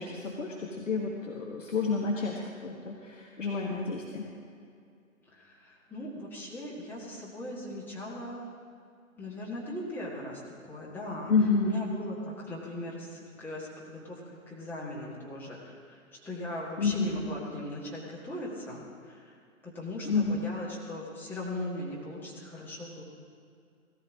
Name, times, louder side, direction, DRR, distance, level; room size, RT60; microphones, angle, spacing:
voice 1, 0.0-4.2 11.3-11.8 16.8-17.2 20.0-20.5, left 4 dB, 60° left, -1 dB, 1.6 m, -29 dB
voice 2, 5.3-8.5 9.2-11.3 11.7-19.4 19.6-23.0, left 1 dB, 5° left, -6 dB, 1.8 m, -39 dB
17.5 x 14.0 x 3.8 m, 2.3 s
figure-of-eight pair, 135°, 42 cm